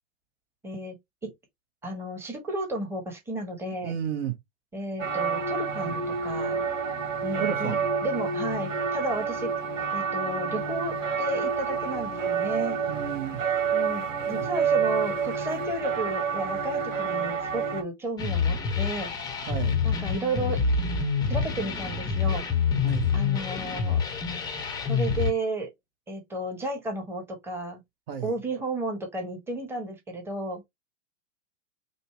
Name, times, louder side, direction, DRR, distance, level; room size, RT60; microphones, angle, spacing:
voice 1, 0.6-1.0 1.2-1.3 1.8-3.9 4.7-6.7 7.2-7.7 8.0-9.5 9.9-12.8 13.7-19.4 19.8-20.6 21.3-22.4 23.1-24.0 24.9-25.7 26.1-27.8 28.2-30.6, right 1 dB, 5° right, 1.1 m, -33 dB
voice 2, 3.8-4.3 5.8-5.9 7.4-7.9 12.9-13.4 14.3-14.5 19.5-19.8 22.8-23.1 28.1-28.3, right 9 dB, 45° right, 1.0 m, -32 dB
sound 1, 5.0-17.8, right 6 dB, 70° right, 1.3 m, -28 dB
sound 2, 18.2-25.3, left 5 dB, 10° left, 0.7 m, -27 dB
5.4 x 2.0 x 3.2 m
figure-of-eight pair, 110°, 39 cm